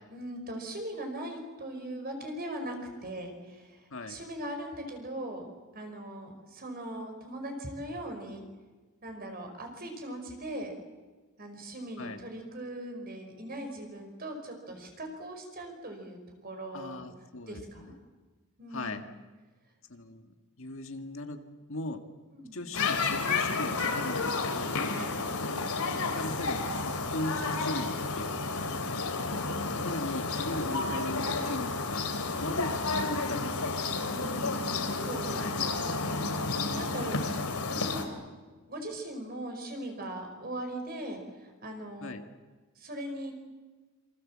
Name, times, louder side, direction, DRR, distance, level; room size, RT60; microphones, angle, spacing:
voice 1, 0.0-2.8 3.0-5.5 5.7-8.4 9.0-10.7 11.4-17.1 17.5-18.0 18.6-19.1 22.3-22.7 24.9-25.1 34.1-38.2 38.7-42.2 42.8-43.3, right 1 dB, 40° right, 5 dB, 5.2 m, -40 dB
voice 2, 16.7-17.9 18.7-19.0 19.9-21.4 21.7-22.0 22.5-24.8 25.3-25.5 25.9-28.5 28.8-29.2 29.8-33.8 35.3-35.6 42.0-42.2, left 2 dB, 60° left, 6 dB, 1.8 m, -39 dB
sound 1, 22.7-38.0, left 3 dB, 85° left, 3.3 m, -31 dB
27.5 x 25.5 x 7.5 m, 1.3 s
head